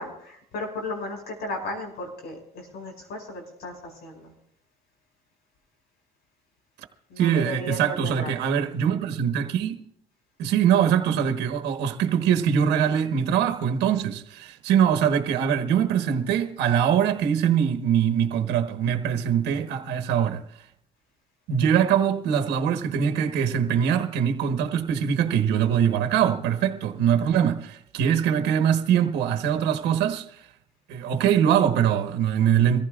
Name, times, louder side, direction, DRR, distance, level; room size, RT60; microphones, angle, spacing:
voice 1, 0.0-4.3 7.1-8.3, left 1 dB, 80° left, 5.3 m, -35 dB
voice 2, 7.2-9.8 10.4-20.4 21.5-30.2 30.9-32.8, right 8 dB, 85° right, 1.1 m, -23 dB
23.5 x 15.0 x 2.4 m
cardioid pair, 110°, 17 cm